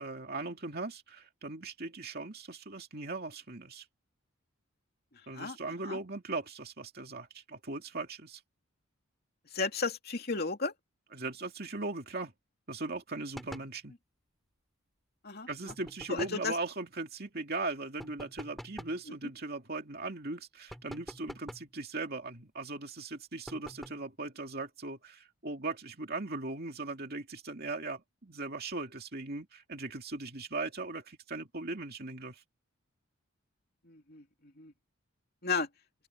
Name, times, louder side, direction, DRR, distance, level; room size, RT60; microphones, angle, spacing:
voice 1, 0.0-3.9 5.3-8.4 11.1-12.3 12.7-13.9 15.5-32.4, right 3 dB, 45° right, 2.6 m, -39 dB
voice 2, 9.5-10.7 15.2-15.7 16.1-16.6 19.1-19.2 33.8-34.7 35.4-35.7, left 4 dB, 45° left, 2.9 m, -34 dB
sound 1, 13.3-13.8 15.7-16.5 18.0-19.0 20.7-21.7 23.5-24.1, equal, ahead, 2.4 m, -46 dB
open air
head